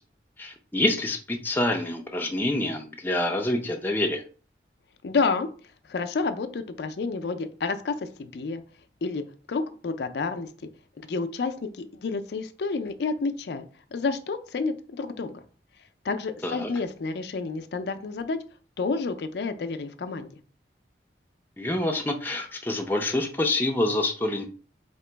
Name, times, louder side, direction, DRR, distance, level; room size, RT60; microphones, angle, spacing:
voice 1, 0.4-4.2 16.4-16.7 21.6-24.5, left 1 dB, 10° left, 2 dB, 0.4 m, -27 dB
voice 2, 5.0-5.5 5.8-8.6 9.0-10.5 11.0-13.6 13.9-15.4 16.0-18.4 18.8-20.4, left 4 dB, 70° left, 9 dB, 0.4 m, -30 dB
2.9 x 2.9 x 4.4 m, 0.40 s
head